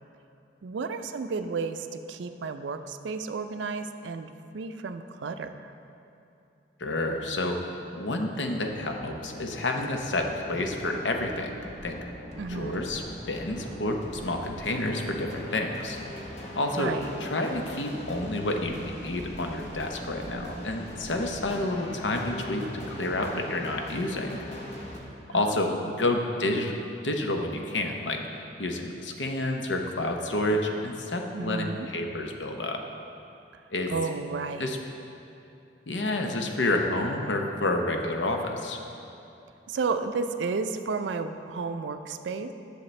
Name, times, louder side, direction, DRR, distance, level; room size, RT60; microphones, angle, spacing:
voice 1, 0.6-5.7 12.4-12.9 16.8-17.1 25.3-25.8 31.3-31.9 33.9-34.7 39.7-42.5, right 4 dB, 80° right, 8 dB, 0.4 m, -32 dB
voice 2, 6.8-7.7 8.0-12.0 12.5-16.0 16.5-24.4 25.3-26.8 27.0-32.8 33.7-33.9 34.6-34.8 35.9-38.8, left 2 dB, 85° left, 3 dB, 0.7 m, -29 dB
sound 1, 8.6-25.0, equal, 40° left, 1.0 m, -41 dB
10.5 x 6.5 x 3.2 m, 2.8 s
head